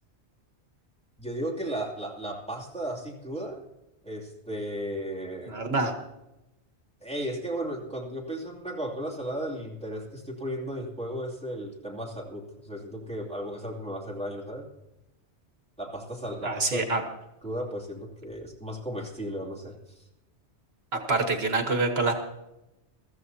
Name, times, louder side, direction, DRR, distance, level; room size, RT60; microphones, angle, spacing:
voice 1, 1.2-3.6 4.0-5.6 7.0-14.7 15.8-16.9 17.4-20.0, right 1 dB, 5° left, -4 dB, 2.7 m, -35 dB
voice 2, 5.5-5.9 16.4-17.0 20.9-22.1, right 3 dB, 65° right, 4 dB, 1.5 m, -26 dB
22.5 x 14.5 x 2.8 m, 0.95 s
omnidirectional pair, 1.1 m